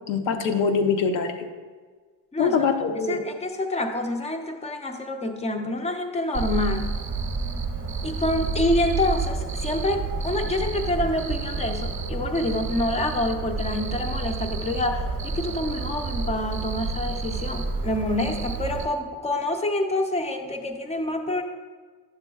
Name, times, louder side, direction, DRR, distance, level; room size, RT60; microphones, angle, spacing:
voice 1, 0.1-1.5 2.4-3.2, left 5 dB, 85° left, 5 dB, 0.9 m, -23 dB
voice 2, 2.3-2.7 3.1-6.9 8.0-21.4, left 1 dB, 15° left, 5 dB, 0.5 m, -27 dB
Cricket, 6.3-18.8, right 4 dB, 25° right, 0.8 m, -30 dB
10.0 x 7.0 x 2.3 m, 1.5 s
cardioid pair, 125°, 44 cm